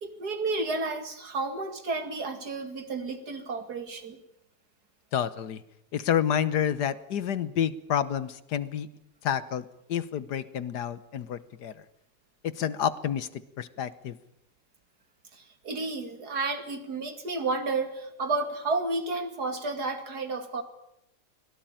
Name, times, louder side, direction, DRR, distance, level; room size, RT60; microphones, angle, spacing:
voice 1, 0.0-4.2 15.3-20.6, right 3 dB, 70° right, 8 dB, 2.9 m, -31 dB
voice 2, 5.1-5.6 5.9-8.9 9.2-11.7 12.4-14.2, left 9 dB, 75° left, 16 dB, 1.6 m, -29 dB
24.0 x 17.5 x 9.1 m, 0.80 s
omnidirectional pair, 1.8 m